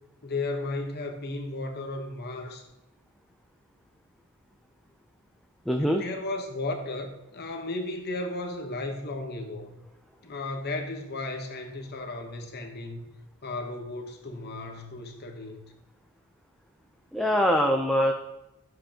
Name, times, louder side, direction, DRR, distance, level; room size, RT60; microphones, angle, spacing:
voice 1, 0.2-2.6 5.8-9.8 10.2-13.1 13.4-15.7, left 2 dB, 45° left, 3 dB, 1.0 m, -34 dB
voice 2, 5.7-6.0 17.1-18.1, equal, ahead, 2 dB, 0.5 m, -23 dB
11.0 x 7.6 x 2.9 m, 0.96 s
head